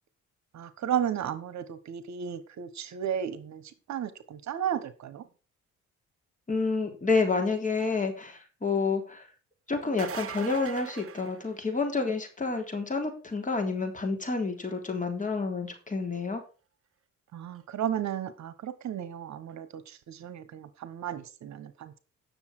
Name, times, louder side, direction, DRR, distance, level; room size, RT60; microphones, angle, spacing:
voice 1, 0.5-5.3 17.3-22.0, right 9 dB, 65° right, 14 dB, 1.2 m, -34 dB
voice 2, 6.5-9.2 9.7-16.4, left 4 dB, 25° left, 3 dB, 3.6 m, -29 dB
sound 1, 9.8-12.0 17.6-17.7 19.5-19.6, right 8 dB, 50° right, 1.1 m, -40 dB
9.8 x 6.8 x 6.0 m, 0.35 s
cardioid pair, 90°, 30 cm